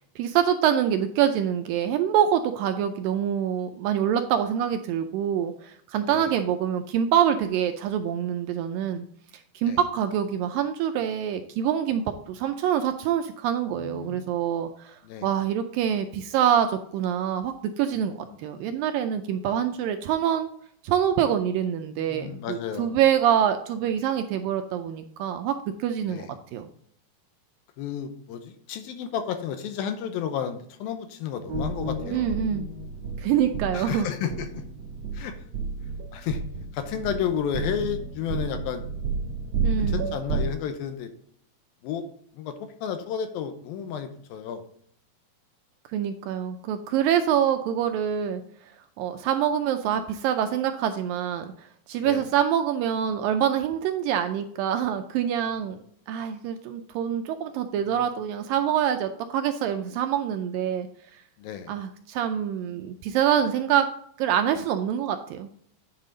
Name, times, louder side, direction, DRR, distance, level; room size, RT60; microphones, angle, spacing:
voice 1, 0.2-9.0 9.3-20.5 20.8-26.7 32.1-32.7 33.2-34.1 39.6-40.1 45.9-48.4 49.0-55.8 56.1-60.9 61.7-63.9 64.2-65.5, right 9 dB, 80° right, 7 dB, 2.1 m, -25 dB
voice 2, 13.8-14.2 15.0-15.3 17.9-18.1 22.1-22.9 26.0-26.3 27.8-32.3 33.7-34.6 35.1-35.4 36.1-36.4 36.7-38.9 39.8-41.1 41.8-42.1 42.4-44.6 52.0-52.3 57.8-58.0 61.4-61.7, left 8 dB, 80° left, 8 dB, 2.5 m, -32 dB
sound 1, 31.5-40.5, right 4 dB, 60° right, 1.7 m, -31 dB
9.9 x 5.5 x 3.8 m, 0.65 s
omnidirectional pair, 4.4 m